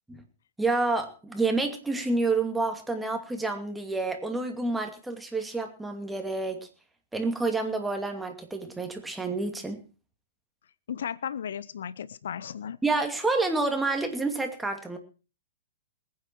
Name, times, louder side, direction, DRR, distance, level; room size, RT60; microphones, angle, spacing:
voice 1, 0.6-6.7 7.1-9.8 12.8-15.0, right 3 dB, 5° right, 5 dB, 2.5 m, -29 dB
voice 2, 10.9-12.8, left 8 dB, 60° left, 19 dB, 0.6 m, -35 dB
21.0 x 9.6 x 4.5 m, 0.36 s
figure-of-eight pair, 110°, 0 cm